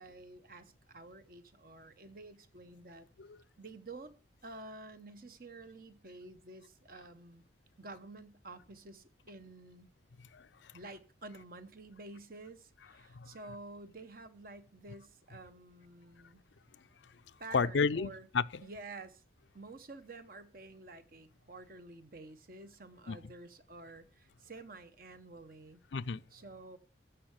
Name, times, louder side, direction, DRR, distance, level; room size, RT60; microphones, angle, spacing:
voice 1, 0.0-3.1 3.6-4.1 4.4-7.4 7.8-9.9 10.7-16.4 17.4-18.3 18.6-19.2 19.5-25.8 26.3-26.8, right 2 dB, 50° right, 1.1 m, -50 dB
voice 2, 10.3-10.7 13.1-13.3 17.5-18.6 23.1-23.2 25.9-26.2, left 5 dB, 80° left, 0.5 m, -32 dB
15.0 x 5.7 x 8.1 m
head